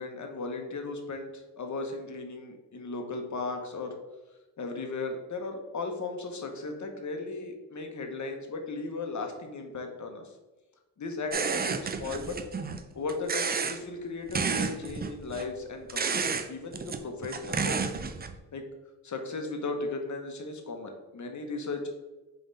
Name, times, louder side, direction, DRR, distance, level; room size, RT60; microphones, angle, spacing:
voice 1, 0.0-4.0 4.6-10.3 11.0-12.4 12.9-18.0 18.5-18.6 19.0-21.9, left 3 dB, 45° left, 4 dB, 0.9 m, -36 dB
sound 1, 11.3-12.8 13.1-13.8 14.3-15.5 15.9-16.5 16.7-18.4, right 5 dB, 25° right, 0.4 m, -31 dB
3.8 x 3.6 x 3.9 m, 1.1 s
cardioid pair, 60°, 39 cm